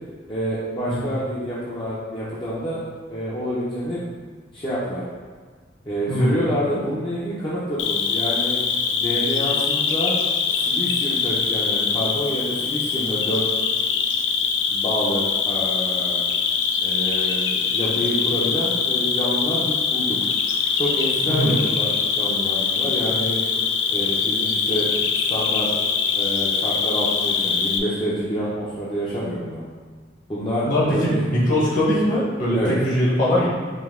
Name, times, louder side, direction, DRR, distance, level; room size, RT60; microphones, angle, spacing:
voice 1, 0.3-2.8 3.1-4.0 4.5-5.0 5.9-8.6 8.9-10.2 10.6-13.4 14.7-16.2 16.8-20.2 20.8-23.4 23.9-25.0 25.3-25.7 26.1-29.6 30.3-31.2 32.5-32.7, equal, 25° left, -9 dB, 0.7 m, -27 dB
Cricket, 7.8-27.8, left 6 dB, 70° left, 0.4 m, -23 dB
voice 2, 30.6-33.5, equal, 45° left, -6 dB, 1.3 m, -21 dB
5.2 x 2.7 x 3.7 m, 1.5 s
head